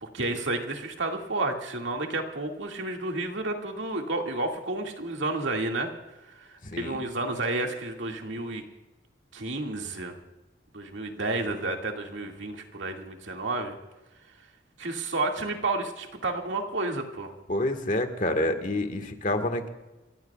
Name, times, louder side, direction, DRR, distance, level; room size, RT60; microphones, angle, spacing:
voice 1, 0.0-5.9 6.3-8.6 9.3-10.1 10.7-13.8 14.8-17.3, right 2 dB, 75° right, 2 dB, 2.1 m, -31 dB
voice 2, 6.6-7.0 17.5-19.7, left 1 dB, 45° left, 7 dB, 1.6 m, -28 dB
29.0 x 15.0 x 2.4 m, 1.1 s
head